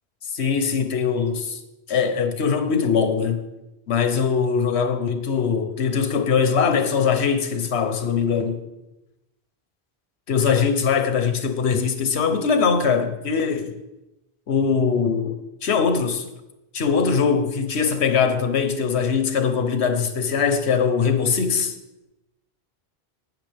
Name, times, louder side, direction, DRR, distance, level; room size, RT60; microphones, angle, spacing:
voice 1, 0.3-1.6 1.9-3.4 3.9-8.6 10.3-13.7 14.5-15.4 15.6-16.2 16.7-21.7, left 6 dB, 90° left, 1.3 m, -21 dB
12.0 x 9.2 x 3.5 m
omnidirectional pair, 1.1 m